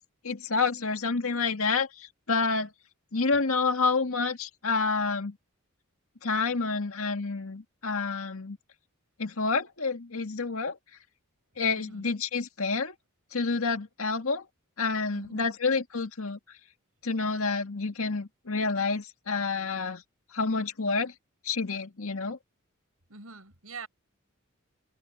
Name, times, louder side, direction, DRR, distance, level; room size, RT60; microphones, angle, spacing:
voice 1, 0.2-2.7 3.1-5.4 6.2-8.6 9.2-10.8 11.6-12.9 13.3-14.5 14.8-16.4 17.0-20.0 20.3-21.1 21.4-22.4, left 4 dB, 75° left, 1.9 m, -28 dB
voice 2, 11.7-12.1 15.1-15.5 23.1-23.9, right 4 dB, 80° right, 6.9 m, -45 dB
head